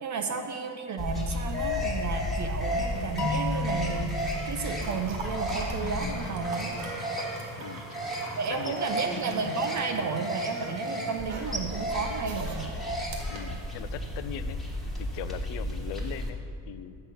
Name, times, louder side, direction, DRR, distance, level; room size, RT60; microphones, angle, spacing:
voice 1, 0.0-4.1 4.4-6.8 8.4-12.7, right 5 dB, 35° right, 5 dB, 0.6 m, -32 dB
sound 1, 1.0-16.3, equal, ahead, 1.3 m, -33 dB
sound 2, 1.9-14.2 15.5-15.7, right 3 dB, 80° right, 1.7 m, -45 dB
sound 3, 3.2-6.1, left 3 dB, 35° left, 1.3 m, -35 dB
voice 2, 7.6-8.0 8.5-9.0 13.3-14.6 14.9-17.0, left 10 dB, 60° left, 12 dB, 0.6 m, -40 dB
7.6 x 6.6 x 5.9 m, 2.4 s
cardioid pair, 130°, 48 cm